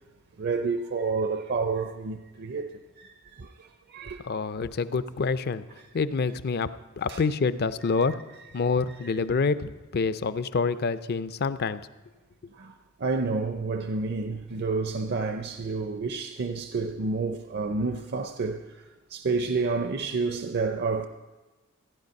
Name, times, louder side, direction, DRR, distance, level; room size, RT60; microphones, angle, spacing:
voice 1, 0.4-4.2 5.8-5.9 7.1-7.2 9.0-9.2 12.5-18.8 19.1-21.1, right 4 dB, 50° right, 0.5 m, -30 dB
voice 2, 4.2-5.6 5.9-6.7 7.0-8.2 8.5-11.8, left 4 dB, 45° left, 0.5 m, -27 dB
14.5 x 10.5 x 5.3 m
head